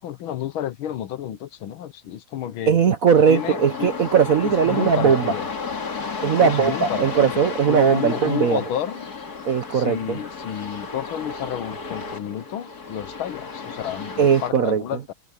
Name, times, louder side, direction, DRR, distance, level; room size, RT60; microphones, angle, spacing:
voice 1, 0.0-2.8 3.3-3.9 4.4-5.5 6.4-7.4 7.7-9.1 9.7-15.1, left 10 dB, 70° left, 1.7 m, -31 dB
voice 2, 2.7-5.3 6.2-8.6 9.4-10.2 14.2-14.8, right 7 dB, 55° right, 1.0 m, -19 dB
sound 1, 3.1-14.5, left 5 dB, 45° left, 2.7 m, -33 dB
omnidirectional pair, 2.4 m